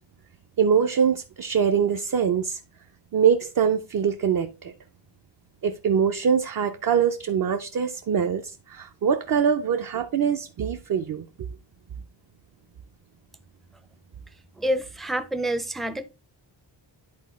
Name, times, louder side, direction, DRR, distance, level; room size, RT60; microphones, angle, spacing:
voice 1, 0.6-2.6 3.1-4.7 5.6-11.2, right 7 dB, 50° right, 0.5 m, -23 dB
voice 2, 14.6-16.0, right 1 dB, ahead, 0.4 m, -27 dB
10.5 x 4.2 x 3.1 m
wide cardioid pair, 155°, 45 cm